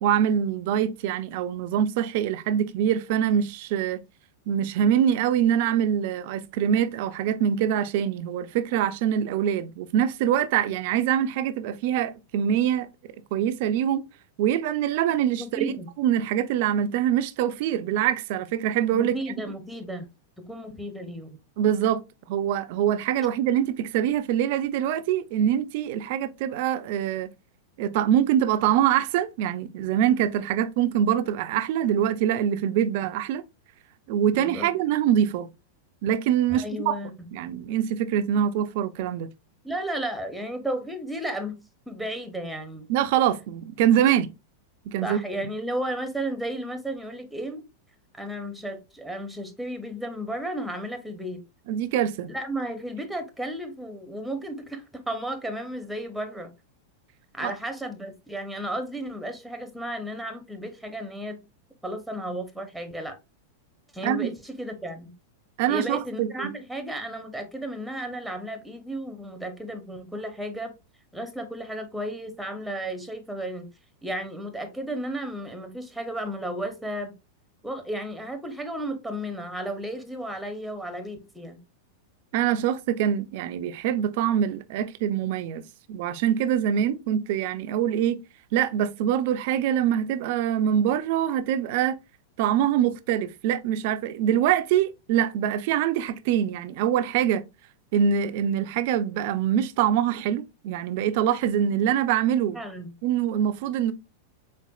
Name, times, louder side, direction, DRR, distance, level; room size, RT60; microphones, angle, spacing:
voice 1, 0.0-4.0 4.5-12.9 13.3-14.0 14.4-15.7 16.0-19.1 21.6-22.0 22.3-27.3 27.8-33.4 34.1-35.5 36.0-37.0 37.3-39.3 42.9-44.3 44.9-45.2 51.7-52.3 57.4-57.5 64.0-64.3 65.6-66.5 82.3-85.6 85.9-88.2 88.5-91.9 92.4-97.4 97.9-102.6 103.0-103.9, right 10 dB, 60° right, 0.4 m, -24 dB
voice 2, 15.4-15.9 18.9-20.1 20.5-21.4 34.3-34.7 36.5-37.1 39.6-41.6 41.9-42.9 45.0-47.6 48.1-51.4 52.3-56.5 57.3-61.4 61.8-63.2 63.9-65.1 65.7-70.7 71.1-73.7 74.0-77.1 77.6-81.6 102.5-102.9, right 1 dB, ahead, 0.8 m, -33 dB
4.3 x 3.5 x 2.3 m
hypercardioid pair, 110°, 0 cm